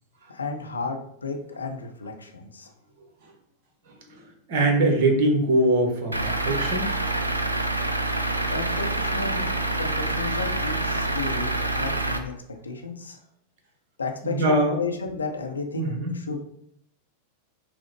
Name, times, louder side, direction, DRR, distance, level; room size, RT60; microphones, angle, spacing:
voice 1, 0.3-2.7 8.5-9.5 9.8-12.3 12.6-13.2 14.0-16.4, left 4 dB, 75° left, 3 dB, 0.6 m, -33 dB
voice 2, 4.5-6.9 14.2-14.8 15.8-16.2, right 1 dB, 50° right, 3 dB, 0.9 m, -22 dB
Truck / Idling, 6.1-12.2, right 2 dB, 85° right, 0.4 m, -26 dB
5.7 x 2.0 x 3.2 m, 0.69 s
figure-of-eight pair, 90°, 0 cm